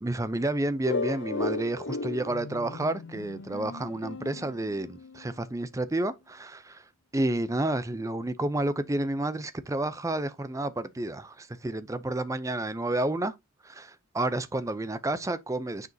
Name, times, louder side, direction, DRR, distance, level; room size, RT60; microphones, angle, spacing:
voice 1, 0.0-6.8 7.1-13.3 13.6-15.9, right 1 dB, 15° right, 0.5 m, -30 dB
sound 1, 0.9-5.4, left 3 dB, 55° left, 0.7 m, -35 dB
9.3 x 4.9 x 2.7 m
head